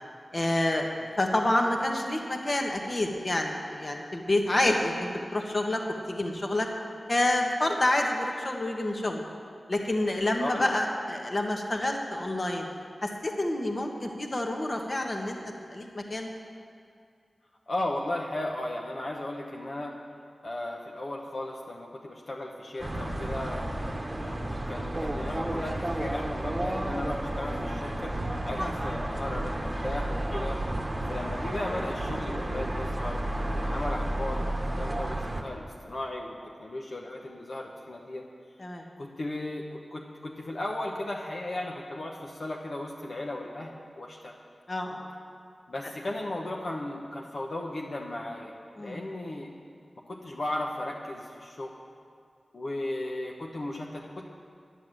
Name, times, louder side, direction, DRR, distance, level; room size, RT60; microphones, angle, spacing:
voice 1, 0.3-5.8 6.1-6.7 7.1-9.2 9.7-12.7 13.0-15.4 15.7-16.3 28.6-28.7 38.6-38.8 44.7-45.1 48.8-49.0, left 1 dB, 35° left, 2 dB, 1.5 m, -28 dB
voice 2, 10.4-10.8 17.7-20.0 20.4-23.8 24.2-28.2 28.4-30.6 31.1-36.3 36.6-38.3 39.0-44.4 45.7-49.5 50.1-51.7 52.5-54.3, left 1 dB, 60° left, -1 dB, 1.0 m, -36 dB
sound 1, 22.8-35.4, right 1 dB, 20° right, 1.3 m, -32 dB
10.5 x 10.0 x 7.6 m, 2.3 s
wide cardioid pair, 90°, 0 cm